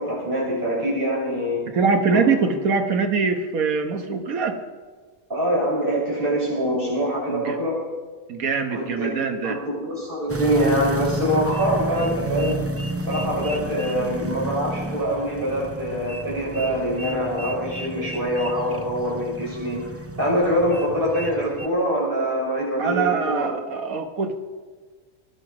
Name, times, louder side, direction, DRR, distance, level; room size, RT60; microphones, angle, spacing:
voice 1, 0.0-1.6 2.1-2.3 5.3-7.8 8.7-9.1 9.4-12.6 13.1-19.8 20.2-23.4, equal, 35° right, -6 dB, 6.9 m, -24 dB
voice 2, 1.7-4.6 7.3-7.6 8.3-9.6 22.8-24.4, right 5 dB, 75° right, 5 dB, 1.6 m, -23 dB
sound 1, 10.3-21.7, right 1 dB, 20° right, 0.4 m, -31 dB
22.5 x 11.5 x 4.9 m, 1.4 s
omnidirectional pair, 1.5 m